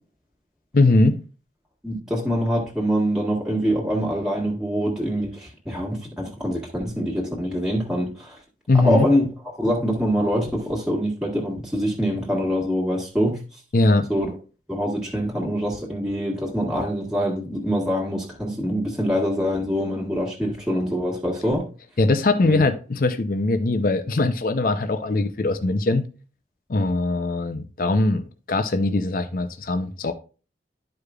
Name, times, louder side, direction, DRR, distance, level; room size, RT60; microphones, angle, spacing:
voice 1, 0.7-1.2 8.7-9.1 13.7-14.1 22.0-26.1 26.7-30.1, left 2 dB, 50° left, 0.6 m, -21 dB
voice 2, 1.8-8.4 8.7-9.2 9.6-13.4 14.1-14.3 14.7-21.7 22.4-22.6, equal, 5° right, 1.5 m, -24 dB
12.5 x 4.9 x 2.3 m
head